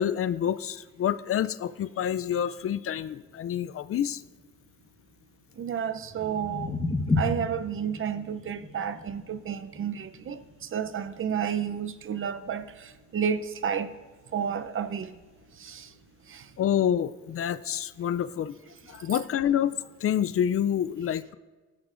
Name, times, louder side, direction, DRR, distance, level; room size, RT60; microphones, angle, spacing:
voice 1, 0.0-4.2 16.6-18.5 18.9-21.3, left 9 dB, 50° left, 0.4 m, -28 dB
voice 2, 5.6-6.8 7.2-13.9 14.3-15.1 15.6-15.9 16.3-16.5 19.1-19.2, right 8 dB, 45° right, 0.7 m, -31 dB
sound 1, 5.9-12.0, left 2 dB, 15° left, 1.4 m, -33 dB
16.0 x 11.0 x 2.6 m
cardioid pair, 90°, 30 cm